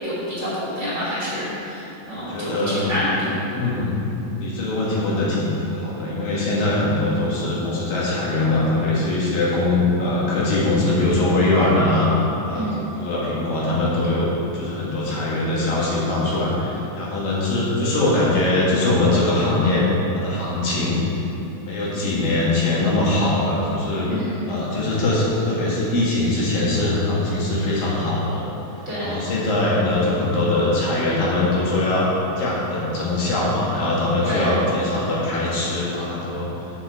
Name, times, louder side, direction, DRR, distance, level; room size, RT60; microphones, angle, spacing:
voice 1, 0.0-3.3 12.5-12.9 24.0-24.5 28.9-29.1 34.2-34.5, equal, 25° right, -9 dB, 1.9 m, -27 dB
voice 2, 2.1-3.2 3.5-4.0 4.3-12.1 12.5-14.3 14.5-19.9 20.1-21.0 21.6-24.1 24.5-28.5 29.0-36.5, left 2 dB, 70° left, -6 dB, 3.5 m, -22 dB
7.5 x 6.3 x 6.8 m, 3.0 s
omnidirectional pair, 4.2 m